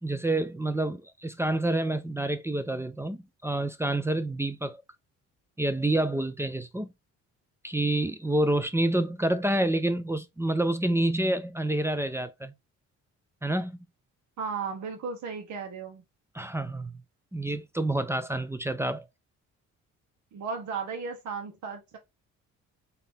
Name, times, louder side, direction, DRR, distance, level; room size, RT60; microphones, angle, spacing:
voice 1, 0.0-4.8 5.6-6.9 7.6-12.5 13.4-13.8 16.3-16.9 17.3-19.0, right 1 dB, 10° right, 0.5 m, -28 dB
voice 2, 14.4-16.0 20.3-22.0, right 5 dB, 70° right, 1.1 m, -35 dB
3.8 x 2.8 x 3.4 m
cardioid pair, 90°, 30 cm